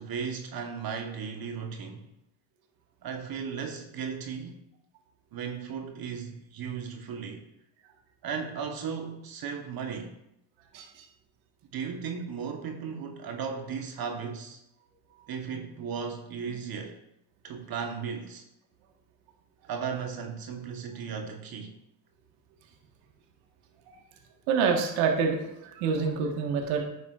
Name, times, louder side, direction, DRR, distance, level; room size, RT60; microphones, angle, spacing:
voice 1, 0.0-2.0 3.0-4.6 5.3-7.5 8.2-10.1 11.7-14.6 15.3-17.0 17.4-18.4 19.7-21.7, right 6 dB, 45° right, 1.2 m, -36 dB
voice 2, 10.7-11.1 23.9-24.0 24.5-26.8, right 5 dB, 75° right, 1.5 m, -27 dB
10.0 x 7.1 x 2.4 m
hypercardioid pair, 75°, 48 cm